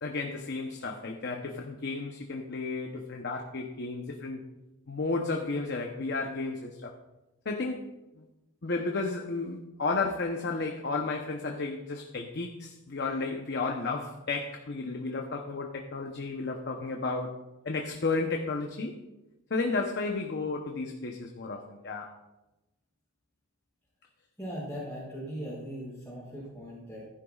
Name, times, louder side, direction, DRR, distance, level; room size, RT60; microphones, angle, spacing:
voice 1, 0.0-4.4 4.9-6.9 7.4-7.8 8.2-8.3 8.6-19.0 19.5-22.1, left 3 dB, 55° left, 2 dB, 0.8 m, -33 dB
voice 2, 24.4-27.1, equal, 5° left, -9 dB, 4.0 m, -39 dB
15.0 x 10.5 x 2.4 m, 1.0 s
head